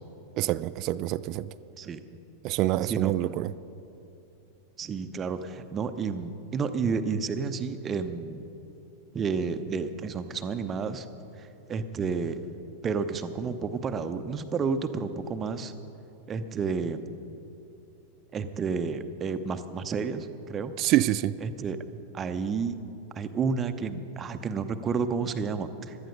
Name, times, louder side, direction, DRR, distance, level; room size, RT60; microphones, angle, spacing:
voice 1, 0.4-1.5 2.4-3.5 20.8-21.3, right 15 dB, 40° right, 0.3 m, -26 dB
voice 2, 2.8-3.3 4.8-8.4 9.1-11.1 11.4-12.4 12.8-15.7 16.3-17.0 18.3-20.7 21.4-21.8 22.1-22.8 23.1-26.0, right 5 dB, 25° right, 0.8 m, -31 dB
17.0 x 12.0 x 5.3 m
figure-of-eight pair, 90°, 0 cm